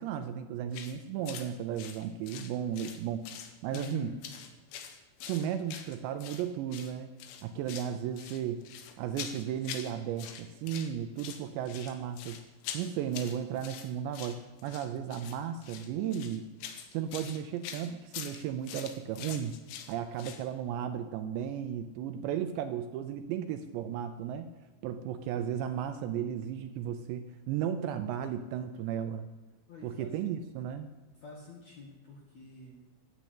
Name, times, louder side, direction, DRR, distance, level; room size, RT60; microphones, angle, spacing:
voice 1, 0.0-3.3 3.6-4.1 5.2-7.1 7.4-8.6 9.0-12.4 12.7-16.5 16.9-19.6 19.9-24.5 24.8-29.3 29.8-30.9, right 9 dB, 80° right, 9 dB, 2.6 m, -35 dB
sound 1, 0.7-1.0 1.3-1.5 1.8-3.0 3.2-4.0 4.2-6.4 6.7-6.9 7.2-7.9 8.2-9.9 10.2-10.9 11.2-20.4, left 8 dB, 80° left, 3.7 m, -44 dB
voice 2, 3.7-4.2 29.7-30.3 31.2-32.7, left 2 dB, 55° left, -1 dB, 2.0 m, -45 dB
12.5 x 10.5 x 8.3 m, 1.2 s
omnidirectional pair, 5.5 m